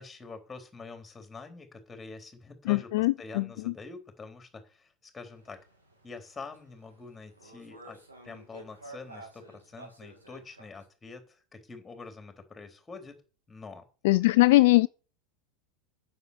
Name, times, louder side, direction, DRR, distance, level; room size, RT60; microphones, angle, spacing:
voice 1, 0.0-5.6 6.0-13.2 13.5-13.9, left 4 dB, 15° left, 3.6 m, -46 dB
voice 2, 2.7-3.7 14.0-14.9, left 19 dB, 60° left, 0.4 m, -22 dB
sound 1, 5.3-10.8, right 2 dB, 90° right, 4.9 m, -52 dB
9.6 x 7.4 x 6.8 m
hypercardioid pair, 85°, 0 cm